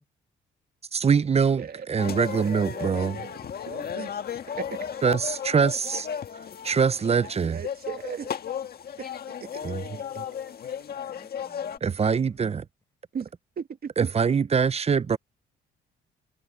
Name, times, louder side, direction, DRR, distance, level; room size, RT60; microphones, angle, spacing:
voice 1, 0.9-1.6 1.9-3.2 5.0-6.1 6.6-7.6 9.6-9.8 10.2-10.3 11.8-12.6 14.0-15.2, right 6 dB, 30° right, 0.7 m, -23 dB
voice 2, 1.6-2.1 2.4-3.4 3.7-4.1 4.6-4.8 7.4-8.3 9.0-9.1 9.4-9.6 13.1-14.1, right 7 dB, 50° right, 2.5 m, -37 dB
sound 1, 2.0-11.8, left 8 dB, 50° left, 1.6 m, -35 dB
voice 3, 3.9-5.1 10.9-12.6, left 2 dB, 15° left, 7.4 m, -56 dB
cardioid pair, 90°, 20 cm